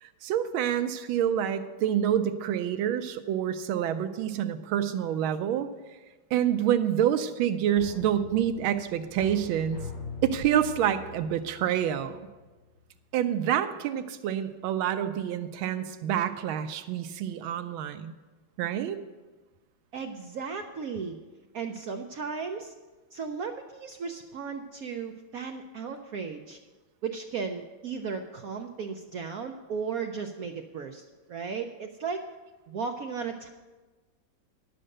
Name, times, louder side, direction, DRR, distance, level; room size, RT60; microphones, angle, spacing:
voice 1, 0.0-5.7 6.3-9.8 10.2-12.2 13.1-18.1 18.6-19.0, right 10 dB, 90° right, 9 dB, 1.4 m, -27 dB
sound 1, 7.8-12.5 12.8-12.9, left 4 dB, 55° left, 5.5 m, -42 dB
voice 2, 19.9-21.2 21.5-22.7 23.1-26.6 27.0-32.3 32.7-33.5, right 5 dB, 70° right, 4 dB, 0.8 m, -35 dB
11.0 x 7.7 x 6.5 m, 1.2 s
omnidirectional pair, 2.2 m